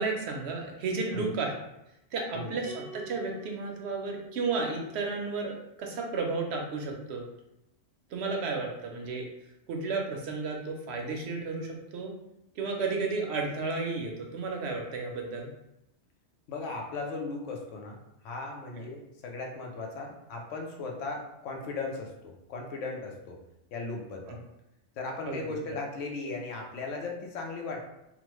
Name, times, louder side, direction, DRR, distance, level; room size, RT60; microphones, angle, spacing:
voice 1, 0.0-1.5 2.1-7.3 8.1-9.3 9.7-12.1 12.6-15.5 18.7-18.8 24.3-24.4 25.2-25.4, right 4 dB, 70° right, 1 dB, 0.8 m, -33 dB
sound 1, 2.6-5.1, equal, 45° left, 1.0 m, -47 dB
voice 2, 16.5-18.0 18.2-23.4 23.7-24.4 25.0-27.9, left 3 dB, 85° left, 1 dB, 1.0 m, -37 dB
2.9 x 2.1 x 3.0 m, 0.87 s
omnidirectional pair, 1.2 m